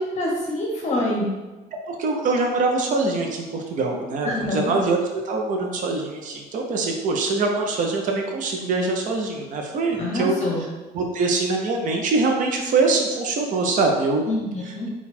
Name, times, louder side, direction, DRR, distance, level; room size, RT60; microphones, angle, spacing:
voice 1, 0.2-1.3 4.2-4.7 10.0-10.6 14.3-14.9, left 1 dB, 40° left, -2 dB, 0.7 m, -25 dB
voice 2, 1.9-10.3 10.9-14.3 14.6-14.9, right 3 dB, 50° right, 1 dB, 0.6 m, -23 dB
3.9 x 2.3 x 4.2 m, 1.2 s
cardioid pair, 110°, 17 cm